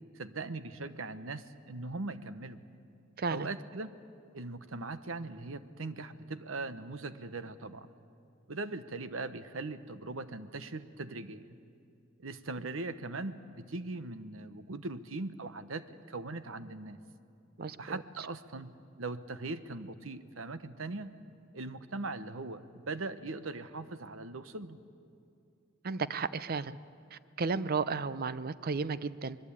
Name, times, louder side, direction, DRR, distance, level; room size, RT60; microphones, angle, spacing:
voice 1, 0.1-2.6 3.3-3.9 4.3-7.9 8.5-11.4 12.2-17.0 17.8-21.1 21.5-24.8, right 3 dB, 90° right, 12 dB, 1.1 m, -40 dB
voice 2, 3.2-3.5 17.6-18.0 25.8-26.8 27.1-29.4, right 4 dB, 50° right, 15 dB, 0.6 m, -33 dB
24.0 x 21.0 x 8.6 m, 2.5 s
head